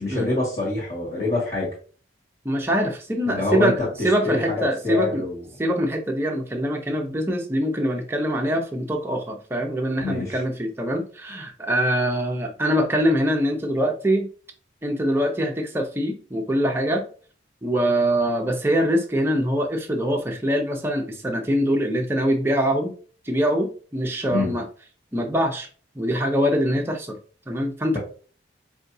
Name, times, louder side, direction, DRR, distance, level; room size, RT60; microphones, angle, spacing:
voice 1, 0.0-1.7 3.2-3.9 4.2-5.4 10.0-10.4 24.3-24.5, left 2 dB, 35° left, -7 dB, 1.5 m, -26 dB
voice 2, 2.4-3.8 4.0-5.2 5.6-14.3 14.8-17.0 17.6-22.9 23.3-24.6 25.1-25.7 26.0-27.2 27.5-28.0, equal, 10° right, 2 dB, 0.5 m, -23 dB
4.9 x 2.6 x 2.6 m, 0.41 s
head